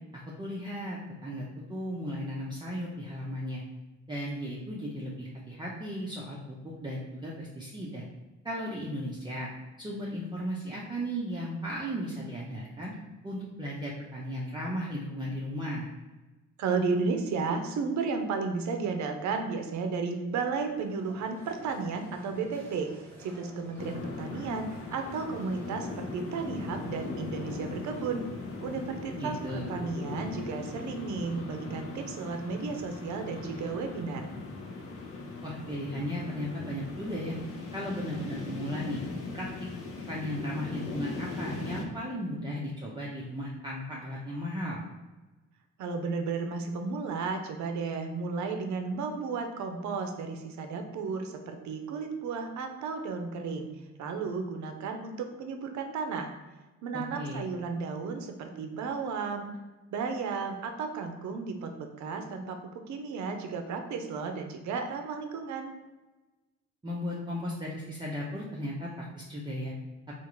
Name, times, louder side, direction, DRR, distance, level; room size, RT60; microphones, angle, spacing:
voice 1, 0.1-3.6 4.1-8.0 8.4-9.5 9.8-12.9 13.2-15.9 29.1-29.7 35.4-37.4 37.7-39.0 39.3-39.5 40.1-44.8 57.2-57.4 66.8-69.7, equal, 15° right, -5 dB, 0.6 m, -36 dB
voice 2, 16.6-22.9 23.2-28.3 28.6-34.3 45.8-53.7 54.0-56.3 56.8-59.5 59.9-65.7, right 4 dB, 70° right, 5 dB, 0.6 m, -33 dB
sound 1, 20.6-30.6, equal, 5° left, 0.9 m, -53 dB
sound 2, 23.8-41.8, left 3 dB, 50° left, 0.6 m, -39 dB
3.6 x 2.5 x 3.0 m, 1.2 s
cardioid pair, 90°, 30 cm